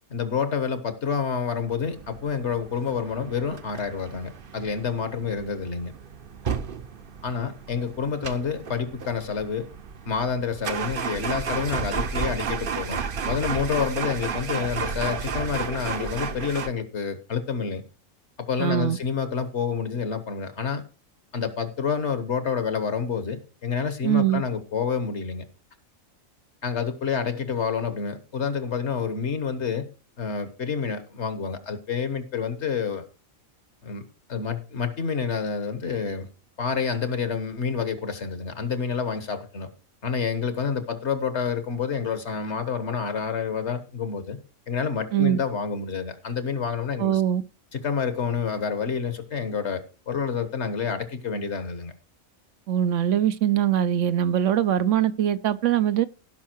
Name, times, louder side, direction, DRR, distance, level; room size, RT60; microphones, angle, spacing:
voice 1, 0.1-5.9 7.2-9.7 10.0-17.8 18.4-20.8 21.3-25.4 26.6-29.8 30.2-33.0 33.8-34.0 34.3-36.3 36.6-39.7 40.0-44.4 44.7-47.2 47.7-51.9, left 6 dB, 60° left, 1.6 m, -28 dB
sound 1, 1.7-16.7, right 6 dB, 50° right, 0.9 m, -33 dB
voice 2, 18.6-19.0 24.0-24.4 45.1-45.4 47.0-47.4 52.7-56.1, right 10 dB, 70° right, 1.0 m, -22 dB
17.0 x 5.6 x 4.5 m
omnidirectional pair, 1.4 m